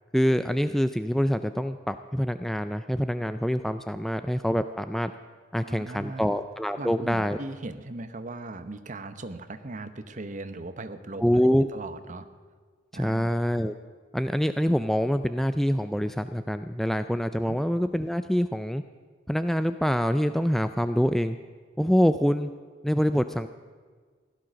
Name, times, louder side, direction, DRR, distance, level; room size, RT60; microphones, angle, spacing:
voice 1, 0.1-5.1 5.5-7.4 11.2-11.7 12.9-13.7 14.1-18.8 19.3-21.4 21.8-22.5 22.8-23.5, equal, ahead, 10 dB, 0.3 m, -25 dB
voice 2, 5.6-6.3 6.8-11.3 11.7-12.3 12.9-13.3 17.5-17.6, right 2 dB, 40° right, 10 dB, 0.9 m, -38 dB
16.0 x 11.5 x 6.3 m, 1.5 s
head